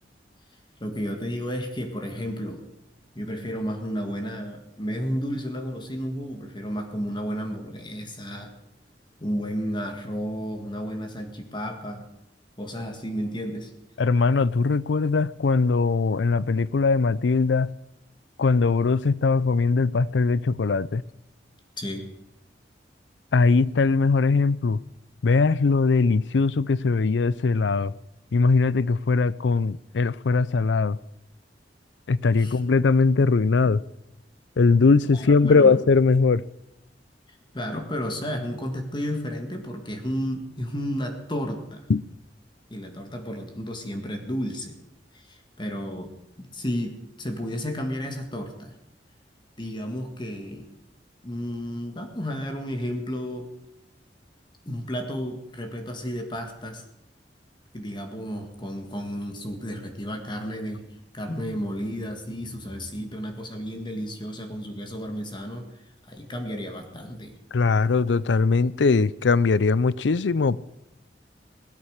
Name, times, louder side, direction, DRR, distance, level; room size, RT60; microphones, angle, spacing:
voice 1, 0.8-2.6 3.2-8.5 9.2-12.0 12.6-13.7 21.8-22.1 32.4-32.6 35.1-35.8 37.5-41.8 42.7-44.8 45.1-46.1 46.4-48.8 49.6-50.7 51.2-53.5 54.6-56.8 57.7-60.9 61.1-65.7 66.0-67.4, equal, 25° left, 1.9 m, -32 dB
voice 2, 14.0-17.7 18.4-21.0 23.3-24.8 25.2-27.9 28.3-31.0 32.1-33.8 34.6-36.4 41.9-42.0 67.5-70.6, left 4 dB, 85° left, 0.5 m, -20 dB
17.0 x 13.0 x 6.5 m
head